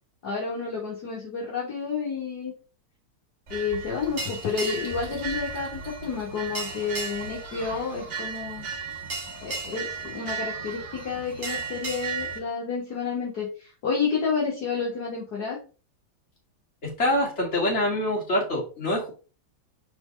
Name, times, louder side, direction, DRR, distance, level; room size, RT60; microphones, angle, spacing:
voice 1, 0.2-2.5 3.5-8.7 9.4-15.6, left 5 dB, 60° left, -5 dB, 2.1 m, -30 dB
sound 1, 3.5-12.4, right 4 dB, 40° right, 1.8 m, -35 dB
voice 2, 16.8-19.1, left 1 dB, 35° left, -3 dB, 2.7 m, -25 dB
4.6 x 4.1 x 5.2 m, 0.35 s
omnidirectional pair, 2.0 m